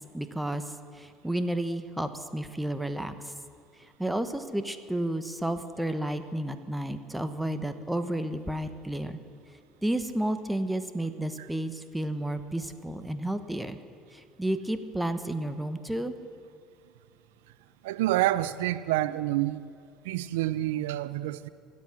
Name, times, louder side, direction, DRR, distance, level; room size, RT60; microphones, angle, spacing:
voice 1, 0.1-0.6 0.9-3.3 4.0-9.2 9.8-13.8 14.1-16.1, right 1 dB, 5° right, 1.1 m, -31 dB
voice 2, 17.8-19.6 20.0-21.5, right 15 dB, 85° right, 0.4 m, -28 dB
24.0 x 8.6 x 6.3 m
hypercardioid pair, 75°, 0 cm